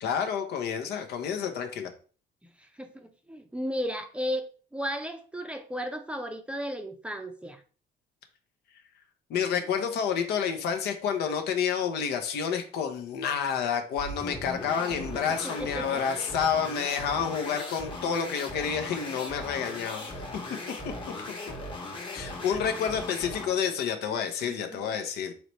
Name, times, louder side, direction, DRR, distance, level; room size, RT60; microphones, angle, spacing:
voice 1, 0.0-1.9 9.3-20.2 20.8-20.9 22.1-25.3, left 7 dB, 75° left, 6 dB, 0.8 m, -29 dB
voice 2, 2.6-4.5 4.7-7.6 15.6-16.0 24.4-25.0, equal, 5° right, 4 dB, 0.5 m, -35 dB
sound 1, 14.0-23.6, left 2 dB, 30° left, 1.0 m, -38 dB
4.0 x 3.1 x 3.1 m, 0.39 s
cardioid pair, 110°, 17 cm